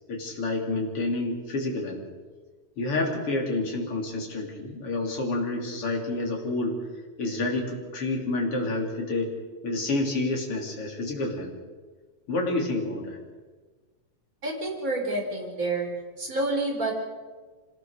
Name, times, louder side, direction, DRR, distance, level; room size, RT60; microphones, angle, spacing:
voice 1, 0.1-2.0 2.8-6.8 7.2-9.3 9.6-11.5 12.3-13.2, left 2 dB, 40° left, 0 dB, 3.9 m, -29 dB
voice 2, 14.4-15.9 16.2-17.0, right 2 dB, 20° right, 0 dB, 4.5 m, -28 dB
25.5 x 19.5 x 6.5 m, 1.4 s
omnidirectional pair, 4.2 m